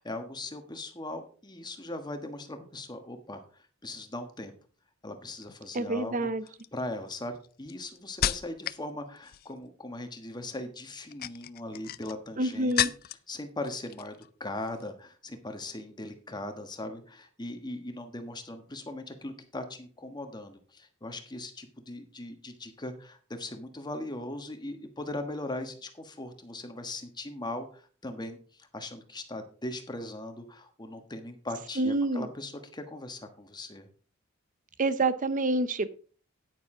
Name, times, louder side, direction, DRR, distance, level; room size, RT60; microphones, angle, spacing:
voice 1, 0.0-4.5 5.0-6.3 6.7-12.9 13.3-33.9, left 2 dB, 20° left, 6 dB, 1.4 m, -39 dB
sound 1, 5.4-5.8 6.5-8.9 9.2-9.7 10.9-13.3 13.6-14.3 14.6-14.8, left 11 dB, 45° left, 0.4 m, -34 dB
voice 2, 5.7-6.4 12.4-12.9 31.8-32.3 34.8-35.9, right 2 dB, 40° right, 14 dB, 0.7 m, -27 dB
9.6 x 9.2 x 3.8 m, 0.40 s
head